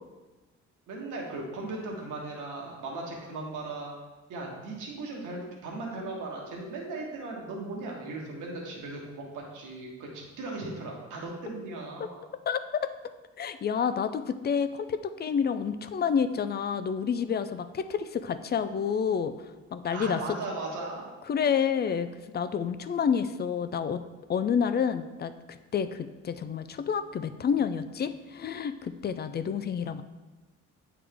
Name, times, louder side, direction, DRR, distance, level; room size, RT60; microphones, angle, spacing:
voice 1, 0.9-3.9 4.3-12.2 19.9-21.1, right 2 dB, 85° right, -1 dB, 1.5 m, -37 dB
voice 2, 12.5-12.9 13.4-19.3 19.7-20.2 21.3-22.1 22.3-24.0 24.3-30.0, left 7 dB, 35° left, 11 dB, 0.4 m, -29 dB
8.5 x 3.6 x 3.5 m, 1.2 s
cardioid pair, 90°, 30 cm